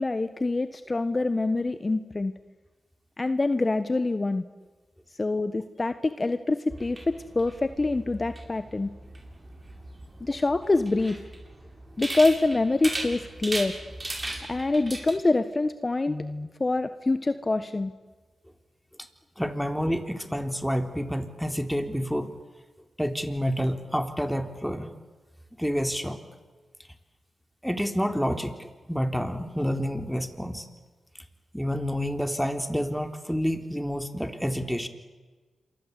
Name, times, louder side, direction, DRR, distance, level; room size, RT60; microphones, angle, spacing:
voice 1, 0.0-2.3 3.2-4.4 5.2-8.9 10.2-11.2 12.0-13.8 14.5-17.9, left 2 dB, 35° left, 11 dB, 1.4 m, -25 dB
sound 1, 6.7-15.1, right 2 dB, 35° right, 8.0 m, -38 dB
voice 2, 19.4-22.3 23.0-24.9 25.6-26.2 27.6-30.7 31.5-34.9, equal, ahead, 7 dB, 3.7 m, -28 dB
27.5 x 24.0 x 8.5 m, 1.3 s
supercardioid pair, 45°, 0 cm